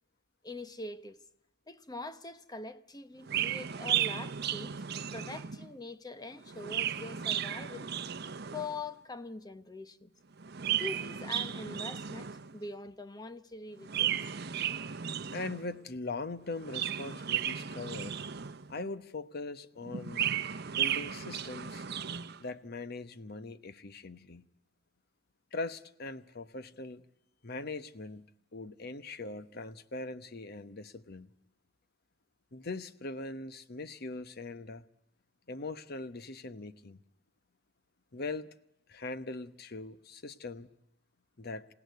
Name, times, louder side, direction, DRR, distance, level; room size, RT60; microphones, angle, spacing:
voice 1, 0.4-1.2 1.7-4.8 5.1-7.9 8.5-10.1 10.7-14.2, left 3 dB, 20° left, 1.0 m, -43 dB
Chirp tweet, 3.2-5.7 6.4-8.8 10.4-12.6 13.8-15.7 16.5-18.8 19.9-22.4, right 9 dB, 55° right, 0.9 m, -34 dB
voice 2, 15.3-18.2 18.7-20.3 20.7-21.8 22.4-24.5 25.5-27.0 27.4-31.3 32.5-34.8 35.5-37.0 38.1-38.5 38.9-40.7 41.4-41.7, left 3 dB, 55° left, 1.1 m, -41 dB
28.0 x 16.5 x 9.4 m
head